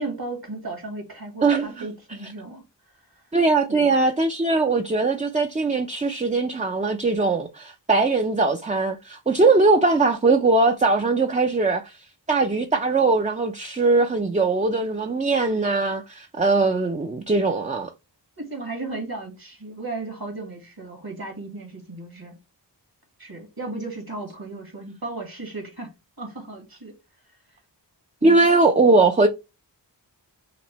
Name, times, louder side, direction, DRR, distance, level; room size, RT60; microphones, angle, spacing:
voice 1, 0.0-2.6 3.7-4.0 18.4-22.4 23.2-25.9 26.2-26.9 28.2-28.5, right 2 dB, 55° right, 1.6 m, -35 dB
voice 2, 1.4-1.9 3.3-12.0 12.3-17.9 28.2-29.3, right 3 dB, 20° right, 0.4 m, -20 dB
5.9 x 2.1 x 3.0 m
wide cardioid pair, 40°, 44 cm